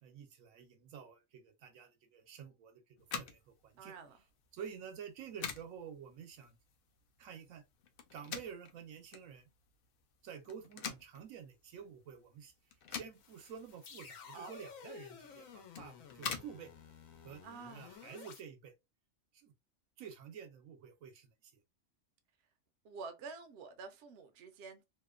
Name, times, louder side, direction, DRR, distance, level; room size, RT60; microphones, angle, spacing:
voice 1, 0.0-2.8 3.1-3.9 4.5-6.6 7.2-7.6 8.1-9.4 10.2-12.5 12.9-16.7 17.2-17.4 17.7-18.7 19.3-19.5 20.0-21.5, right 7 dB, 85° right, 1.1 m, -50 dB
sound 1, 3.0-18.0, left 7 dB, 65° left, 0.5 m, -48 dB
voice 2, 3.8-4.2 14.3-14.5 17.4-17.9 22.8-24.8, right 4 dB, 65° right, 0.8 m, -48 dB
sound 2, 13.1-18.4, left 6 dB, 85° left, 1.1 m, -53 dB
2.8 x 2.1 x 2.3 m
omnidirectional pair, 1.4 m